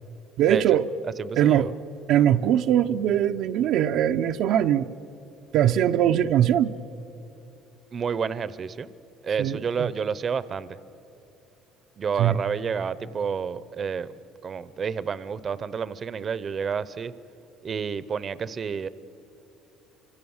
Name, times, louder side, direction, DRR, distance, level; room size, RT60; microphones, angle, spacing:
voice 1, 0.4-0.9 1.4-1.7 2.1-4.9 5.5-6.7 9.4-9.9 12.2-12.4, right 10 dB, 70° right, 6 dB, 0.6 m, -21 dB
voice 2, 1.2-1.7 7.9-8.9 9.2-10.8 12.0-14.1 14.4-17.1 17.6-18.9, right 6 dB, 35° right, 16 dB, 0.7 m, -29 dB
29.5 x 25.5 x 7.2 m, 2.9 s
cardioid pair, 115°, 0 cm